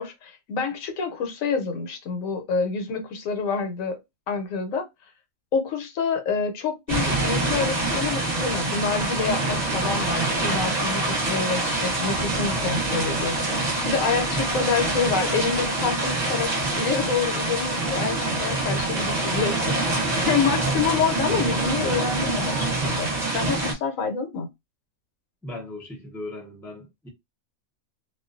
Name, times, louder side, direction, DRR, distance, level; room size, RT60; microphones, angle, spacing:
voice 1, 0.0-4.0 4.3-4.9 5.5-24.5, left 5 dB, 75° left, 1.0 m, -27 dB
sound 1, 6.9-23.7, right 2 dB, 40° right, 0.7 m, -25 dB
voice 2, 18.5-18.9 25.4-27.1, equal, ahead, 0.5 m, -36 dB
2.4 x 2.2 x 2.4 m
omnidirectional pair, 1.5 m